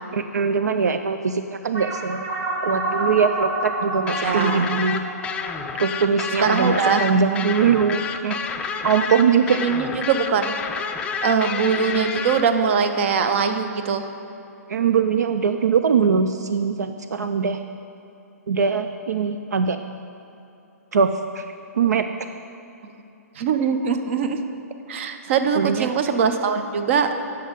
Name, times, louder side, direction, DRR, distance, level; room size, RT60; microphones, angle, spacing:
voice 1, 0.1-2.3 2.6-5.0 5.8-8.4 8.8-9.6 14.7-17.6 18.5-19.8 20.9-22.0 25.6-25.9, right 6 dB, 80° right, 8 dB, 0.4 m, -21 dB
sound 1, 1.7-6.6, right 1 dB, 25° right, 1.5 m, -29 dB
sound 2, 4.1-12.4, left 6 dB, 10° left, 0.4 m, -29 dB
voice 2, 4.1-4.7 6.4-7.1 9.6-10.5 11.0-14.1 23.4-24.4 24.9-27.1, right 6 dB, 45° right, 8 dB, 0.7 m, -22 dB
9.2 x 6.5 x 5.2 m, 2.8 s
hypercardioid pair, 135°, 9 cm